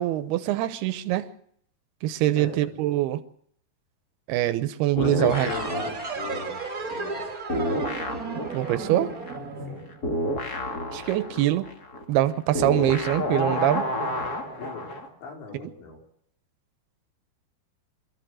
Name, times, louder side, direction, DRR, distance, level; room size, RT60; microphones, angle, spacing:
voice 1, 0.0-1.3 2.0-3.2 4.3-5.5 8.5-9.1 10.9-11.7 12.1-13.9, right 14 dB, 75° right, 2.6 m, -24 dB
voice 2, 2.3-2.7 4.9-7.4 9.7-9.8 14.3-14.9 15.2-16.0, left 5 dB, 75° left, 6.5 m, -39 dB
sound 1, 5.0-7.2 7.5-15.1, left 1 dB, 40° left, 1.3 m, -30 dB
sound 2, 5.2-10.5, right 3 dB, 40° right, 1.3 m, -34 dB
24.5 x 14.5 x 7.7 m
omnidirectional pair, 5.2 m